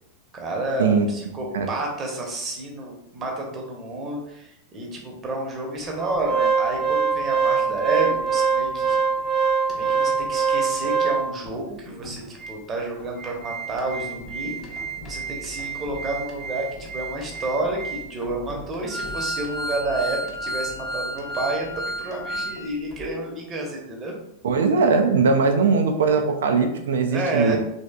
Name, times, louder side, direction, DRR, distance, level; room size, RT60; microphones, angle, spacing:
voice 1, 0.3-9.0 9.7-24.1 25.5-25.6 27.1-27.6, right 2 dB, 25° right, 0 dB, 0.8 m, -30 dB
Organ, 6.0-11.5 12.0-12.1 12.4-12.5 13.0-22.6 22.9-23.0, right 4 dB, 20° left, 0.6 m, -26 dB
voice 2, 24.4-27.6, right 4 dB, 60° right, 5 dB, 0.3 m, -20 dB
3.1 x 2.8 x 2.2 m, 0.79 s
figure-of-eight pair, 90°, 0 cm